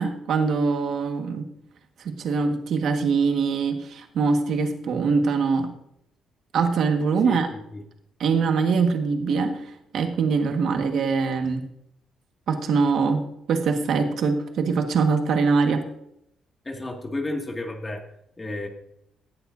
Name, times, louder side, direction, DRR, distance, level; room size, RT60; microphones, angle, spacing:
voice 1, 0.0-1.5 2.0-5.7 6.5-7.5 8.2-11.7 12.5-15.8, right 5 dB, 70° right, 4 dB, 1.6 m, -23 dB
voice 2, 16.7-18.0 18.4-18.7, left 2 dB, 25° left, 2 dB, 2.1 m, -31 dB
18.0 x 11.5 x 2.7 m, 0.75 s
cardioid pair, 90°, 0 cm